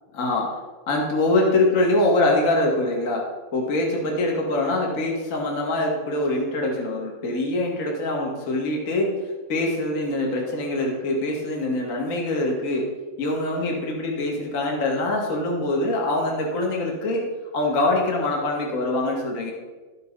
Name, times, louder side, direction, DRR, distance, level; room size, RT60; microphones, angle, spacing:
voice 1, 0.2-0.5 0.9-3.2 3.5-9.2 9.5-12.9 13.2-17.2 17.5-19.5, left 2 dB, 50° left, -1 dB, 0.9 m, -24 dB
13.0 x 6.8 x 5.5 m, 1.3 s
omnidirectional pair, 5.0 m